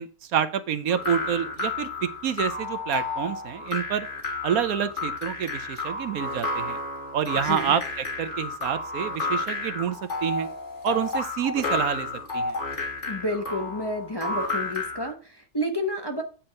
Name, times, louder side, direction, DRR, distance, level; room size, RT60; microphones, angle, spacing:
voice 1, 0.0-4.1 4.4-6.8 7.1-7.8 8.2-10.5 10.8-12.1 12.3-12.6, right 9 dB, 70° right, 12 dB, 1.2 m, -28 dB
sound 1, 0.9-15.1, left 3 dB, 50° left, 2.3 m, -31 dB
voice 2, 13.1-16.2, left 1 dB, 20° left, 3 dB, 0.9 m, -30 dB
8.8 x 4.4 x 5.2 m, 0.36 s
omnidirectional pair, 1.6 m